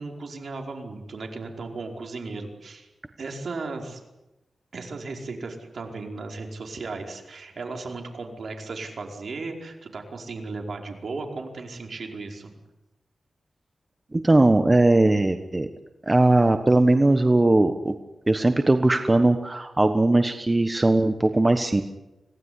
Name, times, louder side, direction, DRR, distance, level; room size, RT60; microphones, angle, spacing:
voice 1, 0.0-2.9 3.2-4.0 4.7-12.5, right 3 dB, 60° right, 2 dB, 4.9 m, -36 dB
voice 2, 14.1-15.7 16.1-17.9 18.3-21.8, right 2 dB, 20° right, 8 dB, 1.3 m, -19 dB
26.0 x 18.5 x 9.9 m, 0.99 s
wide cardioid pair, 110°, 0 cm